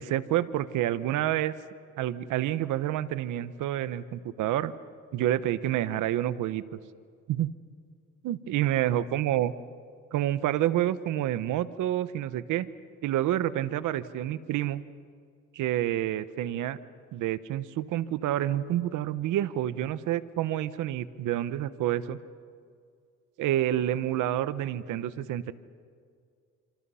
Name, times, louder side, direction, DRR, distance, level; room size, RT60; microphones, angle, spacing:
voice 1, 0.0-1.5 2.0-4.7 5.1-6.8 7.3-7.5 8.2-9.5 10.1-12.7 13.0-14.8 15.5-16.8 17.1-22.2 23.4-25.5, right 12 dB, 90° right, 14 dB, 1.1 m, -28 dB
28.0 x 27.0 x 5.7 m, 2.1 s
cardioid pair, 90°, 30 cm